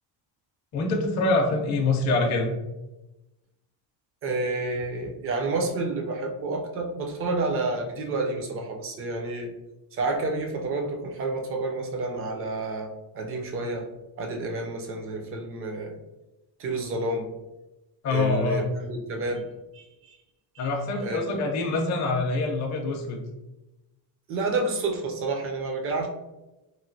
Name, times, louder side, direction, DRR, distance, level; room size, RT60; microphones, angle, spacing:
voice 1, 0.7-2.5 18.0-18.7 20.6-23.2, left 3 dB, 40° left, 1 dB, 0.5 m, -25 dB
voice 2, 4.2-9.5 9.9-12.9 13.1-13.9 14.2-16.0 16.6-17.3 18.1-19.5 19.7-20.2 20.6-20.7 21.0-21.4 24.3-26.1, right 2 dB, 35° right, 2 dB, 0.4 m, -29 dB
3.0 x 2.5 x 2.5 m, 1.0 s
cardioid pair, 165°, 45 cm